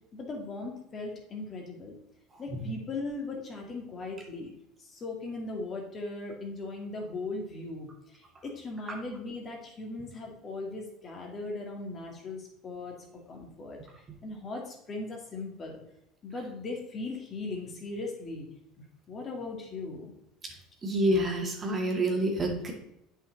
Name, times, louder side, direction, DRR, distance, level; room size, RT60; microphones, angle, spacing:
voice 1, 0.1-2.0 2.4-4.5 4.8-13.0 13.3-15.8 16.2-18.5 18.8-20.1, left 3 dB, 35° left, 0 dB, 2.5 m, -38 dB
voice 2, 20.8-22.7, right 1 dB, 30° right, 1 dB, 2.2 m, -27 dB
8.4 x 5.7 x 4.1 m, 0.80 s
hypercardioid pair, 85°, 0 cm